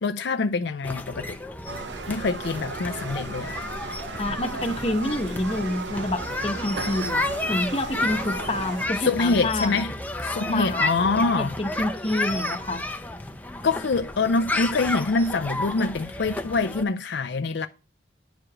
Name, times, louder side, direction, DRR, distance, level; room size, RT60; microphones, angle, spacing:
voice 1, 0.0-1.4 2.1-3.5 9.0-9.9 10.2-11.6 13.6-17.7, left 3 dB, 65° left, 0.5 m, -25 dB
sound 1, 0.8-16.8, left 2 dB, 10° left, 0.6 m, -32 dB
sound 2, 1.7-8.9, right 3 dB, 70° right, 0.7 m, -35 dB
voice 2, 4.2-9.8 10.5-11.1 11.4-12.9, left 1 dB, 30° left, 1.0 m, -28 dB
10.0 x 4.8 x 6.1 m
head